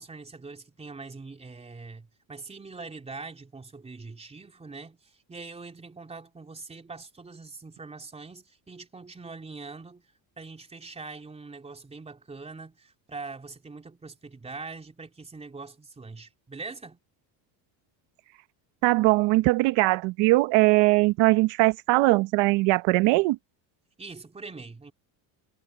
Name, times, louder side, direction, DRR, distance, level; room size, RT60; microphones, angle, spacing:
voice 1, 0.0-17.0 24.0-24.9, right 4 dB, 15° right, 3.7 m, -43 dB
voice 2, 18.8-23.4, right 21 dB, 70° right, 1.1 m, -21 dB
cardioid pair, 145°, 45 cm